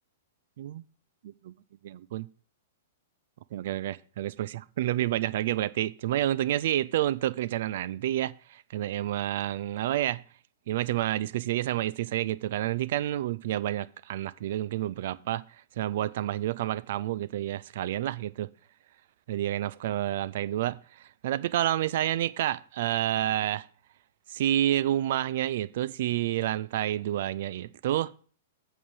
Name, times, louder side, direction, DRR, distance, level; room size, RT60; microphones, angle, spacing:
voice 1, 1.2-1.5 1.8-2.3 3.5-10.2 10.7-15.4 15.8-18.5 19.3-23.7 24.3-28.1, right 13 dB, 50° right, 0.4 m, -29 dB
8.5 x 3.9 x 6.7 m
figure-of-eight pair, 105°, 0 cm